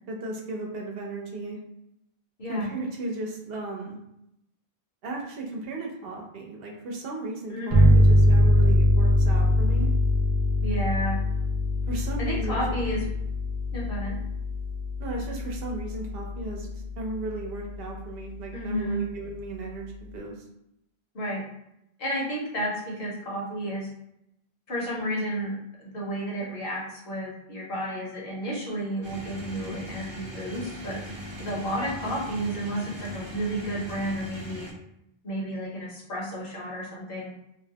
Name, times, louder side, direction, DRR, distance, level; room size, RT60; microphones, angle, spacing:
voice 1, 0.1-1.6 2.5-4.0 5.0-9.9 11.9-12.6 15.0-16.7 17.0-20.3, right 2 dB, 70° right, 0 dB, 0.8 m, -35 dB
voice 2, 7.5-7.9 10.6-11.2 12.2-13.0 13.7-14.1 18.5-19.1 21.1-21.4 22.0-23.9 24.7-31.0 31.4-34.7 35.2-37.3, equal, 65° left, -4 dB, 1.0 m, -31 dB
sound 1, 7.7-17.0, left 1 dB, 50° right, 0.4 m, -23 dB
sound 2, 29.0-34.7, equal, 30° right, 0.8 m, -39 dB
2.5 x 2.0 x 2.7 m, 0.80 s
omnidirectional pair, 1.1 m